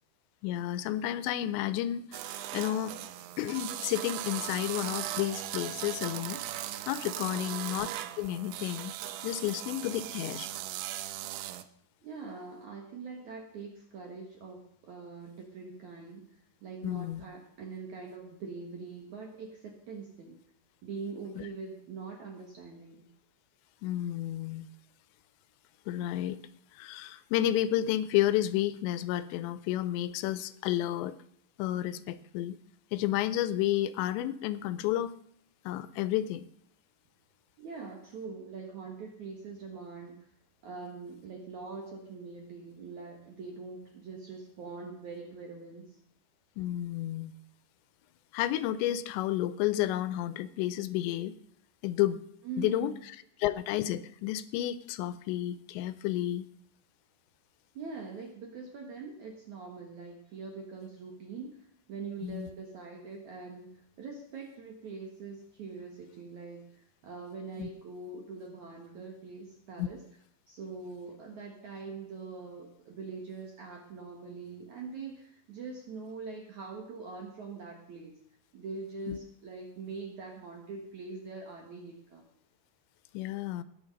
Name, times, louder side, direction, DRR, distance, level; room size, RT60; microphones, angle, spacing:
voice 1, 0.4-2.9 3.4-6.4 6.9-7.9 8.2-8.9 9.2-10.5 16.8-17.2 21.4-21.5 23.8-24.7 25.9-26.4 26.7-31.1 31.6-32.6 32.9-35.1 35.7-36.4 46.6-47.3 48.3-51.4 51.8-52.2 52.6-52.9 53.4-56.5 62.2-62.5 67.6-67.7 69.8-69.9 79.1-79.2 83.1-83.6, left 13 dB, 85° left, 14 dB, 2.8 m, -31 dB
sound 1, 2.1-11.7, right 13 dB, 80° right, 2.4 m, -38 dB
voice 2, 7.2-7.6 12.0-14.6 14.8-16.2 16.6-20.4 20.8-23.1 37.6-40.2 40.6-46.0 52.4-53.0 57.7-70.0 70.5-78.1 78.5-82.3, right 4 dB, 65° right, 1 dB, 2.0 m, -43 dB
18.5 x 6.9 x 5.2 m, 0.66 s
omnidirectional pair, 5.2 m